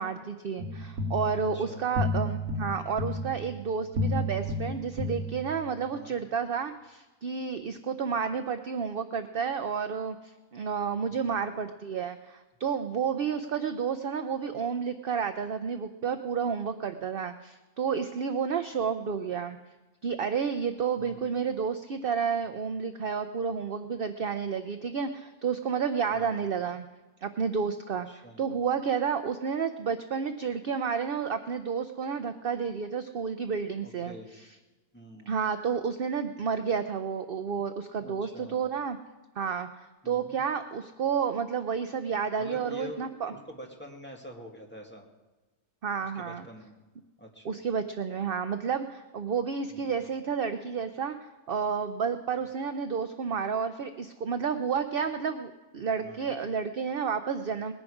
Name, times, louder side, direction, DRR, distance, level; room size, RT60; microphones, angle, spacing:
voice 1, 0.0-19.6 20.0-26.8 27.2-34.1 35.3-39.0 39.4-39.7 40.0-43.3 45.8-46.4 47.4-57.7, right 6 dB, 55° right, 8 dB, 0.7 m, -31 dB
sound 1, 0.6-5.8, left 1 dB, 90° right, 1.7 m, -32 dB
voice 2, 1.4-1.9 5.2-5.4 5.8-6.2 11.1-11.4 21.0-21.3 26.1-26.4 28.1-28.6 33.8-34.3 34.9-35.3 38.0-38.6 40.0-40.4 42.4-45.1 46.1-46.8 47.2-47.7 49.7-49.9 56.0-56.4, left 1 dB, 5° left, -1 dB, 1.9 m, -46 dB
20.0 x 10.5 x 4.9 m, 1.2 s
omnidirectional pair, 1.5 m